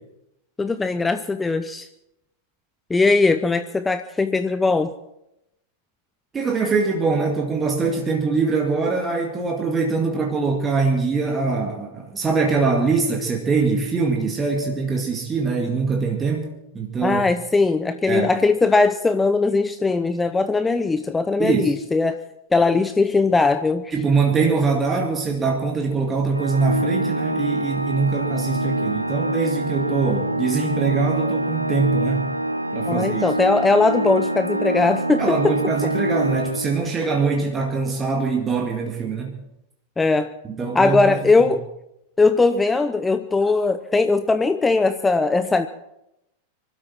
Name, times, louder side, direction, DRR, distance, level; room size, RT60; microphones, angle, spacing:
voice 1, 0.6-1.9 2.9-4.9 17.0-22.2 22.5-23.9 32.9-35.6 40.0-40.3 40.7-41.6 42.2-45.7, left 3 dB, 10° left, 11 dB, 0.6 m, -19 dB
voice 2, 6.3-17.3 18.1-18.3 21.4-21.7 23.9-32.3 32.7-33.2 35.2-39.4 40.5-41.3, right 4 dB, 20° right, 2 dB, 2.1 m, -23 dB
Organ, 26.3-37.2, right 1 dB, 90° right, 0.8 m, -25 dB
25.0 x 12.5 x 4.5 m, 0.86 s
figure-of-eight pair, 90°, 0 cm